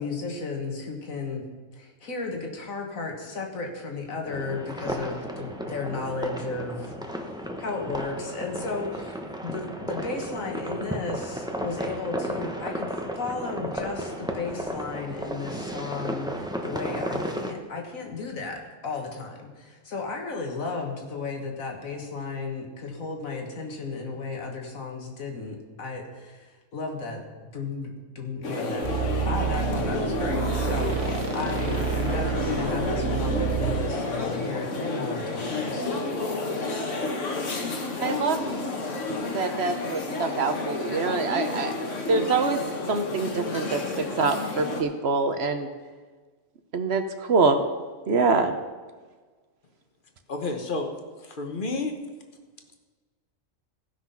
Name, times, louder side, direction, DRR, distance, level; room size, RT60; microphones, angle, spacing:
voice 1, 0.0-1.4 1.7-7.3 7.6-12.9 13.2-27.2 27.5-28.9 29.3-36.0, left 3 dB, 85° left, 2 dB, 2.0 m, -34 dB
sound 1, 4.3-17.5, equal, 5° right, 0.7 m, -34 dB
sound 2, 28.4-44.8, left 3 dB, 65° left, 1.6 m, -30 dB
sound 3, 28.8-33.9, right 8 dB, 85° right, 1.5 m, -29 dB
voice 2, 38.0-38.6 39.3-41.7 42.1-45.7 46.7-47.6 48.1-48.6, right 4 dB, 55° right, 7 dB, 1.0 m, -25 dB
voice 3, 50.3-50.9 51.2-52.0, left 3 dB, 40° left, 4 dB, 1.2 m, -30 dB
15.5 x 6.0 x 5.6 m, 1.4 s
omnidirectional pair, 1.4 m